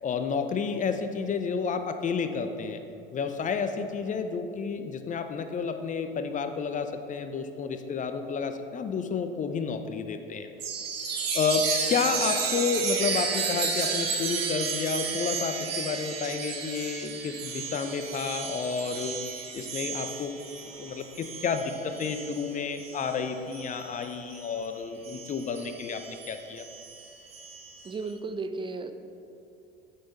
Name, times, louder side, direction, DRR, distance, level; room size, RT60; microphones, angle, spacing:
voice 1, 0.0-2.8 3.1-10.5 11.3-19.2 19.5-20.3 20.8-26.6, left 5 dB, 25° left, 8 dB, 0.6 m, -30 dB
Chime, 10.6-24.6 25.0-27.9, right 5 dB, 80° right, 1.1 m, -33 dB
voice 2, 27.8-28.9, right 3 dB, 15° right, 8 dB, 0.5 m, -34 dB
8.5 x 5.7 x 4.1 m, 2.8 s
figure-of-eight pair, 70°, 29 cm